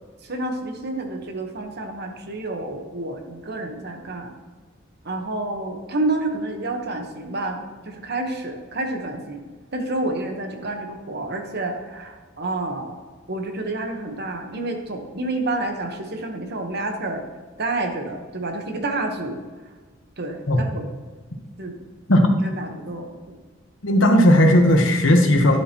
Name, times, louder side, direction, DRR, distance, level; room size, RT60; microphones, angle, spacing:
voice 1, 0.2-4.3 5.0-9.4 9.7-13.0 13.3-17.2 17.6-19.4 20.2-20.9 21.6-21.8 22.4-23.4, right 2 dB, 55° right, 4 dB, 1.2 m, -29 dB
voice 2, 23.8-25.6, equal, 75° left, 4 dB, 1.2 m, -16 dB
10.5 x 7.7 x 3.0 m, 1.4 s
head